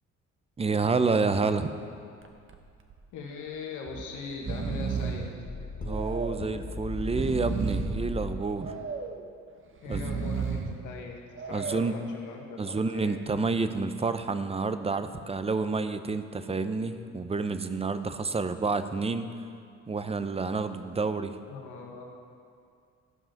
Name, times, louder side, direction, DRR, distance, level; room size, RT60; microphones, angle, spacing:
voice 1, 0.6-1.7 5.8-8.7 9.9-10.0 11.5-12.0 12.6-19.3 19.9-21.3, right 4 dB, 20° right, 10 dB, 0.6 m, -29 dB
Breathing, 2.2-2.6 2.9-3.0 3.9-4.1 4.3-5.3 5.9-6.5 7.0-8.0 8.6-9.2 9.8-10.8 11.4-12.0, right 5 dB, 45° right, 0.9 m, -33 dB
voice 2, 3.1-5.3 9.8-13.2 21.5-22.0, left 4 dB, 90° left, 0 dB, 1.6 m, -40 dB
sound 1, 5.4-8.4, left 1 dB, 30° left, 1.2 m, -36 dB
14.5 x 5.4 x 5.8 m, 2.3 s
cardioid pair, 90°, 30 cm